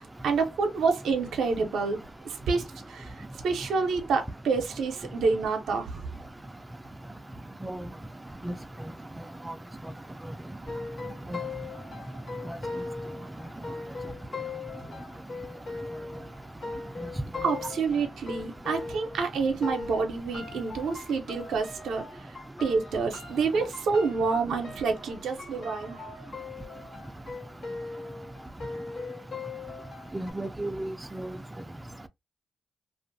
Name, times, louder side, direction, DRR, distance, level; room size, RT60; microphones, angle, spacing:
voice 1, 0.0-6.1 11.4-11.5 17.4-22.4 22.6-26.4, right 4 dB, 90° right, 0.6 m, -28 dB
sound 1, 10.7-19.3 19.6-30.3, left 4 dB, 70° left, 1.0 m, -40 dB
voice 2, 30.1-31.3, right 1 dB, 15° right, 0.4 m, -34 dB
2.5 x 2.4 x 2.6 m
cardioid pair, 55°, 0 cm